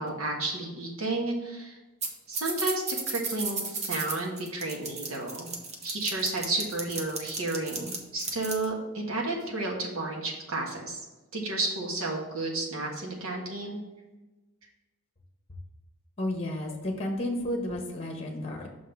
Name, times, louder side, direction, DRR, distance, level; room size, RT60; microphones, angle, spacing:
voice 1, 0.0-1.8 2.3-5.5 5.8-11.0 11.3-13.8, right 2 dB, 75° right, -1 dB, 1.5 m, -32 dB
sound 1, 2.0-2.1 2.3-8.7, right 4 dB, 30° right, 0.8 m, -34 dB
voice 2, 16.2-18.7, left 1 dB, 30° left, 2 dB, 1.0 m, -32 dB
6.1 x 3.7 x 5.9 m, 1.1 s
head